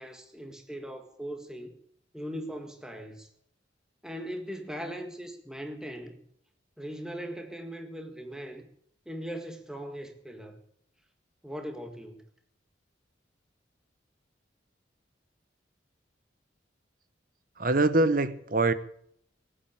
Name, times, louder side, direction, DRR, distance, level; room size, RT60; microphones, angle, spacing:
voice 1, 0.0-1.8 2.1-3.3 4.0-6.2 6.8-8.6 9.0-10.6 11.4-12.2, equal, 5° right, 1.7 m, -39 dB
voice 2, 17.6-18.7, right 2 dB, 45° right, 1.0 m, -24 dB
18.0 x 9.0 x 8.7 m
head